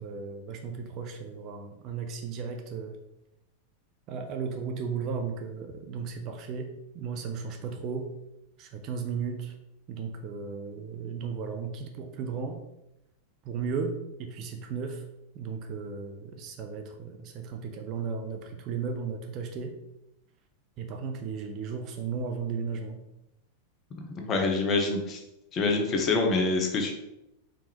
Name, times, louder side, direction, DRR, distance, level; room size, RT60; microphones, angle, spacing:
voice 1, 0.0-3.0 4.1-6.7 6.9-8.1 8.6-9.5 9.9-12.6 13.4-15.0 15.3-19.7 20.8-23.0, right 5 dB, 40° right, 5 dB, 0.6 m, -35 dB
voice 2, 23.9-25.2 25.5-26.9, left 3 dB, 30° left, 3 dB, 0.8 m, -26 dB
5.0 x 3.5 x 2.9 m, 0.87 s
figure-of-eight pair, 90°, 0 cm